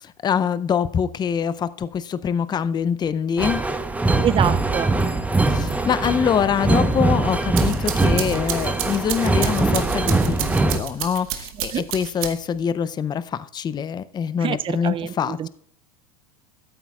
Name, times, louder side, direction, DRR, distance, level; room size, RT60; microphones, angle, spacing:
voice 1, 0.0-3.6 5.5-15.5, left 7 dB, 25° left, 0.5 m, -24 dB
sound 1, 3.4-10.8, right 2 dB, 10° right, 0.9 m, -22 dB
voice 2, 4.2-4.9 11.7-11.9 14.4-15.5, right 10 dB, 30° right, 0.5 m, -25 dB
sound 2, 7.3-12.6, right 11 dB, 70° right, 1.4 m, -31 dB
14.0 x 12.5 x 2.4 m
hypercardioid pair, 95°, 19 cm